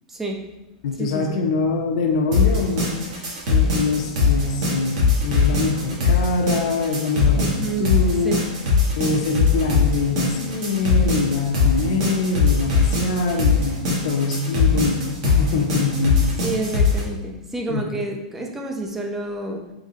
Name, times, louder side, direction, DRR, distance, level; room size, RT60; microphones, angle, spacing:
voice 1, 0.1-0.5 1.0-1.4 7.4-8.4 16.4-19.7, right 2 dB, 10° right, 2 dB, 0.4 m, -29 dB
voice 2, 0.8-8.4 9.0-16.4 17.7-17.8, left 4 dB, 65° left, 3 dB, 0.5 m, -24 dB
sound 1, 2.3-17.0, left 4 dB, 55° right, 1.1 m, -20 dB
3.8 x 2.6 x 2.7 m, 0.95 s
supercardioid pair, 150°, 4 cm